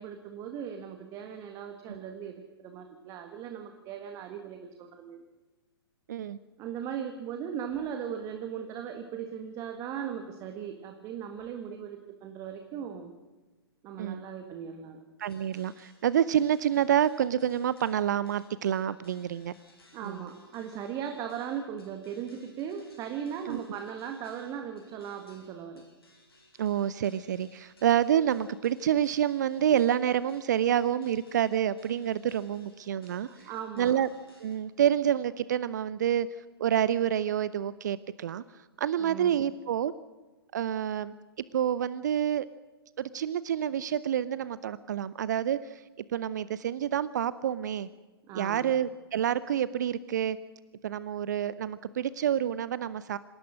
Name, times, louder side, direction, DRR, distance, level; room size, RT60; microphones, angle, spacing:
voice 1, 0.0-5.2 6.6-13.1 13.8-15.0 19.9-25.8 33.0-34.0 39.0-39.4 48.3-48.7, right 8 dB, 25° right, 6 dB, 1.6 m, -38 dB
sound 1, 15.2-34.6, left 2 dB, 70° left, 7.4 m, -62 dB
voice 2, 15.2-19.5 20.0-20.2 23.5-23.6 26.6-33.3 33.8-34.1 34.4-36.3 36.6-38.4 38.8-39.9 40.5-41.1 41.5-42.5 43.0-45.8 46.1-47.9 48.3-50.4 50.8-53.2, right 10 dB, 45° right, 17 dB, 0.6 m, -28 dB
26.5 x 18.0 x 6.3 m, 1.2 s
figure-of-eight pair, 115°, 13 cm